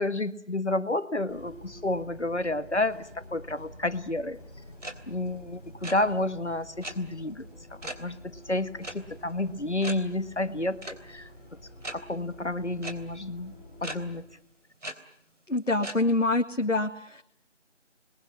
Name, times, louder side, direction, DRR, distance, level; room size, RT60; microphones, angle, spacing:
voice 1, 0.0-4.4 5.1-7.5 8.0-11.3 11.9-13.5 13.8-14.2, left 2 dB, 65° left, 12 dB, 1.7 m, -30 dB
Bus, 1.3-14.2, equal, 15° left, 4.1 m, -48 dB
sound 1, 4.8-4.9 5.2-5.4 5.7-5.9 6.8-6.9 7.8-8.0 8.8-8.9 9.3-9.4 9.8-9.9 10.8-10.9 11.8-11.9 12.8-12.9 13.8-14.0 14.8-14.9 15.8-16.0, right 1 dB, 75° right, 3.5 m, -37 dB
voice 2, 15.5-17.2, left 2 dB, 85° left, 2 dB, 2.0 m, -26 dB
28.0 x 22.0 x 8.6 m, 0.73 s
figure-of-eight pair, 175°, 37 cm